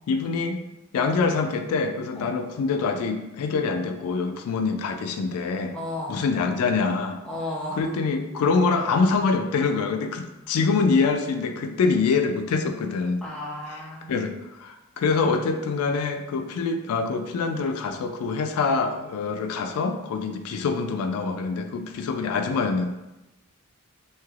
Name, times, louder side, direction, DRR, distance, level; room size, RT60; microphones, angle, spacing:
voice 1, 0.1-0.6 0.9-5.7 6.1-7.2 7.8-13.2 14.1-22.9, left 4 dB, 90° left, 6 dB, 0.3 m, -25 dB
voice 2, 5.7-6.2 7.2-7.9 13.2-14.1, left 1 dB, 5° left, -5 dB, 0.6 m, -33 dB
3.2 x 2.8 x 2.4 m, 0.96 s
head